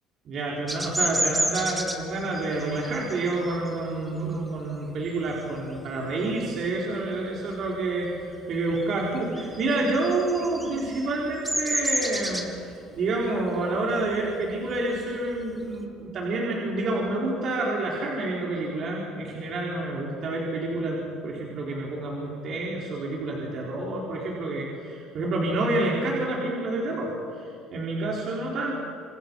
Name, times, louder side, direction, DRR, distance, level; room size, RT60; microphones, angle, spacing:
voice 1, 0.2-28.7, right 2 dB, 50° right, -3 dB, 4.8 m, -28 dB
Bird vocalization bird call bird song, 0.7-5.9 6.3-6.6 6.9-8.2 8.4-15.8, right 1 dB, 5° right, 3.2 m, -31 dB
27.5 x 27.0 x 5.7 m, 2.7 s
cardioid pair, 105°, 0 cm